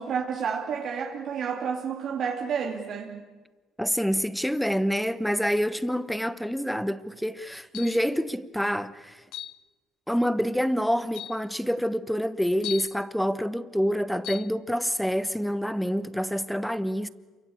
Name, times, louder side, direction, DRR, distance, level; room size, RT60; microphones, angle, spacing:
voice 1, 0.0-3.2, right 6 dB, 50° right, 2.6 m, -30 dB
voice 2, 3.8-9.2 10.1-17.1, equal, ahead, 1.0 m, -27 dB
sound 1, 7.7-8.1 9.3-9.6 10.5-10.6 11.1-11.4 12.6-13.0 14.2-14.5, left 12 dB, 70° left, 0.8 m, -37 dB
28.0 x 24.0 x 8.5 m
cardioid pair, 120°, 0 cm